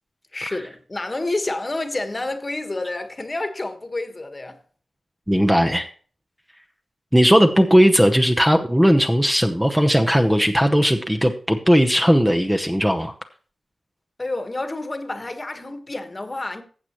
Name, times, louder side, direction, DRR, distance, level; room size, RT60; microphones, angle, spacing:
voice 1, 0.3-4.6 14.2-16.6, left 2 dB, 30° left, 1.4 m, -29 dB
voice 2, 5.3-5.9 7.1-13.1, equal, 5° right, 0.9 m, -17 dB
15.0 x 7.9 x 3.0 m
wide cardioid pair, 80°, 0 cm